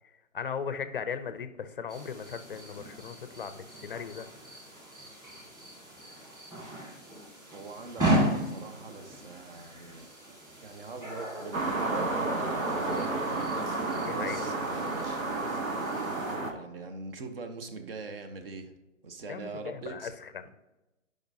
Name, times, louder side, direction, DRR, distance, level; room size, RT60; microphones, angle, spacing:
voice 1, 0.3-4.3 14.0-14.5 19.3-20.5, left 6 dB, 45° left, 11 dB, 0.5 m, -37 dB
sound 1, 1.9-16.3, right 1 dB, 10° right, 1.9 m, -36 dB
voice 2, 7.5-10.3 10.6-15.2 16.4-18.7 19.0-20.1, right 3 dB, 45° right, 7 dB, 1.1 m, -43 dB
sound 2, 11.5-16.5, right 3 dB, 85° right, 1.6 m, -31 dB
10.5 x 5.2 x 2.7 m, 1.0 s
hypercardioid pair, 155°, 39 cm